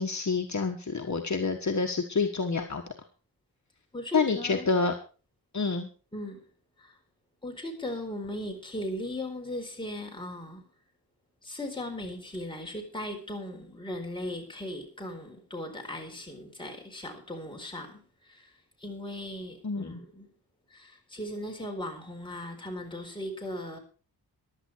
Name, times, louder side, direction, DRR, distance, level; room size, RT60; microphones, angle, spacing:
voice 1, 0.0-2.8 4.1-4.9 5.5-5.9 19.6-20.0, left 4 dB, 45° left, 1.6 m, -28 dB
voice 2, 3.9-4.7 6.1-6.5 6.8-7.0 7.4-10.7 11.4-18.5 18.8-20.3 20.7-23.8, left 1 dB, 10° left, 4.3 m, -38 dB
15.5 x 12.0 x 4.7 m
wide cardioid pair, 125°, 38 cm